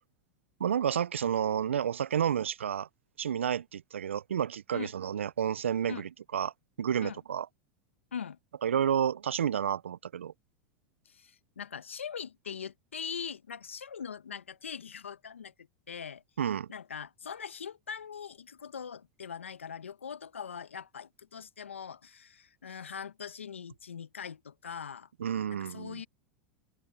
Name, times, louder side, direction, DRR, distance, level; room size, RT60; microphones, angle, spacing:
voice 1, 0.6-2.9 3.2-6.5 6.8-7.5 8.6-10.3 16.4-16.7 25.2-26.0, right 9 dB, 85° right, 0.5 m, -30 dB
voice 2, 11.0-16.2 16.7-25.1 25.5-26.1, left 7 dB, 90° left, 1.2 m, -42 dB
open air
hypercardioid pair, 95°, 7 cm